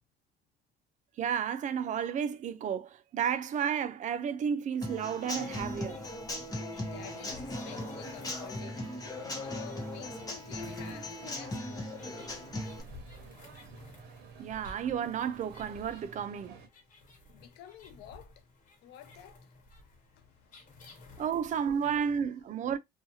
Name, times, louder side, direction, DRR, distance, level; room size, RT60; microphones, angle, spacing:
voice 1, 1.2-6.0 14.4-16.6 21.2-22.8, right 8 dB, 45° right, 0.5 m, -32 dB
Human voice / Acoustic guitar / Drum, 4.8-12.8, left 1 dB, 20° left, 0.9 m, -38 dB
sound 1, 5.2-22.2, left 2 dB, 50° left, 1.2 m, -55 dB
voice 2, 6.7-12.2 13.8-13.9 17.3-18.5 18.8-21.1 22.0-22.2, left 11 dB, 85° left, 0.5 m, -52 dB
sound 2, 6.9-16.7, right 6 dB, 80° right, 0.8 m, -52 dB
2.7 x 2.3 x 2.8 m
cardioid pair, 110°, 17 cm